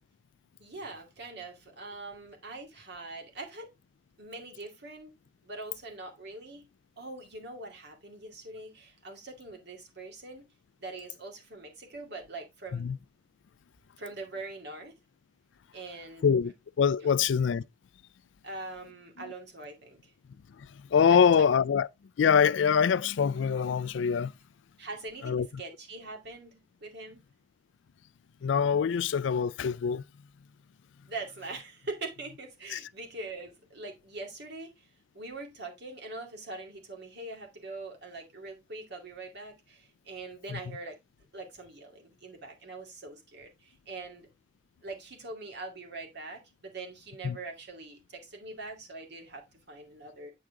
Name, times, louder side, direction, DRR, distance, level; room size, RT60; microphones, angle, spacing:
voice 1, 0.6-3.7 4.2-5.1 5.4-6.6 7.0-10.4 10.8-12.9 14.0-15.0 15.7-16.2 17.0-17.2 18.4-20.1 21.1-21.7 24.8-27.2 31.1-34.9 35.1-41.0 41.3-44.3 44.8-50.3, right 2 dB, 65° right, 2.3 m, -43 dB
voice 2, 16.8-17.6 20.6-21.9 22.2-24.3 25.2-25.5 28.4-30.0 32.7-32.8 40.5-40.6 47.2-47.4, left 7 dB, 80° left, 0.4 m, -24 dB
9.1 x 4.7 x 3.6 m
head